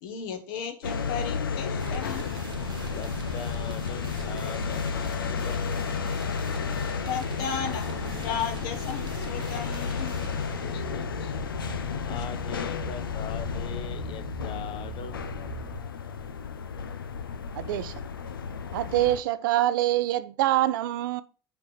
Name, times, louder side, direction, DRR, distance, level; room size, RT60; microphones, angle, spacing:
voice 1, 0.0-2.3 7.1-10.1 12.1-12.2, left 7 dB, 65° left, 1.3 m, -34 dB
sound 1, 0.8-19.2, left 6 dB, 85° left, 0.5 m, -32 dB
sound 2, 1.8-15.8, right 8 dB, 40° right, 0.9 m, -42 dB
voice 2, 2.9-5.9 10.6-11.3 12.0-15.5, left 8 dB, 50° left, 0.8 m, -42 dB
voice 3, 17.6-18.0 18.7-21.2, right 14 dB, 65° right, 0.5 m, -25 dB
5.1 x 4.6 x 5.7 m
figure-of-eight pair, 65°, 11 cm